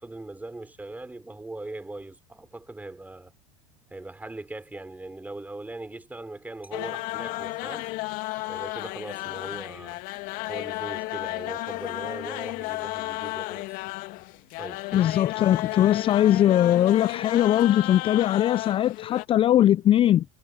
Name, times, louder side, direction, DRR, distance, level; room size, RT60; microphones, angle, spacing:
voice 1, 0.0-3.3 3.9-8.0 8.5-10.0 10.5-13.8 14.6-15.1, right 2 dB, 10° right, 5.8 m, -40 dB
sound 1, 6.7-19.3, left 21 dB, 50° left, 2.1 m, -33 dB
voice 2, 14.9-20.2, left 12 dB, 30° left, 0.5 m, -20 dB
hypercardioid pair, 80°, 18 cm